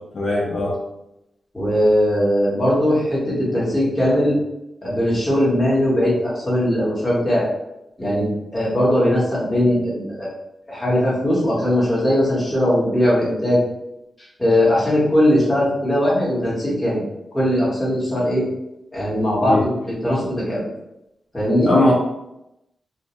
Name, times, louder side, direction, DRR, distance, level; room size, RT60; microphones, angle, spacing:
voice 1, 0.1-0.8 19.4-19.6 21.7-21.9, left 2 dB, 55° left, -5 dB, 0.6 m, -18 dB
voice 2, 1.5-4.4 4.8-7.5 8.0-10.3 10.7-13.6 14.4-17.0 17.3-18.4 18.9-20.6 21.3-21.7, equal, 10° left, -7 dB, 1.0 m, -19 dB
2.5 x 2.1 x 2.9 m, 0.87 s
wide cardioid pair, 155°, 0 cm